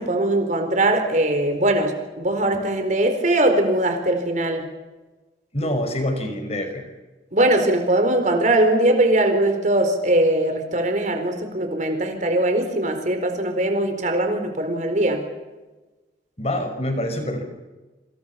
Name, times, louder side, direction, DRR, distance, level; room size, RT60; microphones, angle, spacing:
voice 1, 0.0-4.6 7.3-15.2, right 1 dB, 45° right, 6 dB, 4.3 m, -21 dB
voice 2, 5.5-6.9 16.4-17.4, left 1 dB, 35° left, 6 dB, 5.6 m, -26 dB
28.5 x 27.0 x 5.9 m, 1.2 s
head